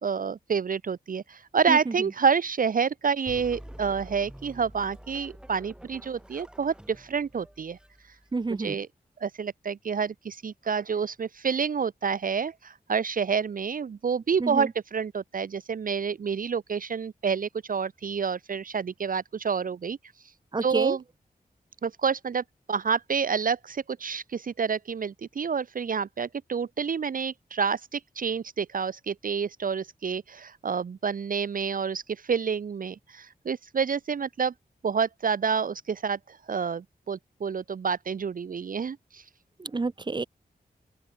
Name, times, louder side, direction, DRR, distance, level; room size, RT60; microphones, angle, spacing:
voice 1, 0.0-7.8 8.5-8.9 9.2-20.0 20.6-21.0 21.8-34.5 34.8-39.2, right 6 dB, 55° right, 0.7 m, -28 dB
sound 1, 3.3-8.7, equal, 5° right, 2.7 m, -47 dB
voice 2, 8.3-8.8 14.4-14.7 20.5-21.0 39.6-40.2, right 3 dB, 25° right, 0.9 m, -29 dB
open air
wide cardioid pair, 125°, 17 cm